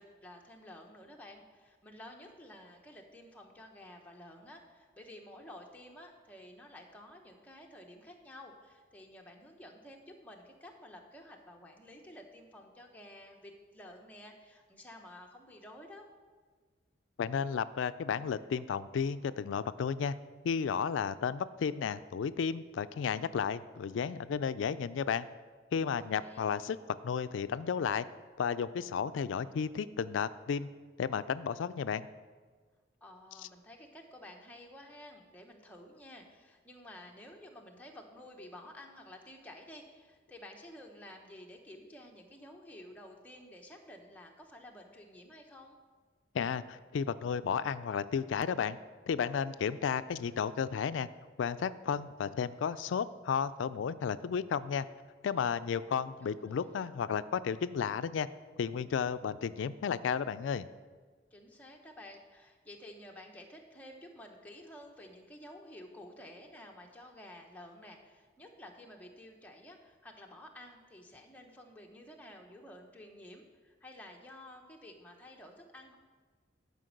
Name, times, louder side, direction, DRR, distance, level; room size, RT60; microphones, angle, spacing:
voice 1, 0.0-16.1 25.9-26.5 33.0-45.8 56.2-56.8 61.3-76.0, left 1 dB, 10° left, 1 dB, 1.0 m, -52 dB
voice 2, 17.2-20.1 20.4-25.3 25.7-26.8 27.0-28.1 28.4-30.7 31.0-32.1 46.3-48.8 49.1-51.1 51.4-54.9 55.2-58.3 58.6-60.7, left 6 dB, 85° left, 14 dB, 0.3 m, -33 dB
11.5 x 5.2 x 6.5 m, 1.5 s
head